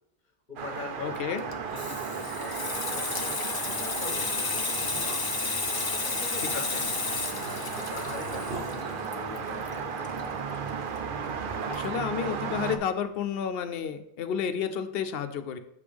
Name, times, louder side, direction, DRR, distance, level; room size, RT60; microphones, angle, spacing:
voice 1, 0.5-5.3 5.9-7.0 7.6-10.4, left 2 dB, 50° left, 3 dB, 1.2 m, -43 dB
sound 1, 0.6-12.8, right 6 dB, 60° right, 0.7 m, -35 dB
voice 2, 1.0-1.4 11.7-15.6, left 8 dB, 75° left, 10 dB, 0.8 m, -31 dB
Water tap faucet / Sink (filling or washing), 1.4-10.7 11.0-11.2, left 4 dB, 30° left, 0.4 m, -32 dB
sound 2, 1.6-2.3 2.5-2.6 3.0-3.2 3.9-4.0 4.7-5.6 7.1-9.8 11.0-13.3 13.5-13.6, right 3 dB, 80° right, 1.2 m, -44 dB
6.7 x 5.1 x 3.4 m, 0.77 s
omnidirectional pair, 1.0 m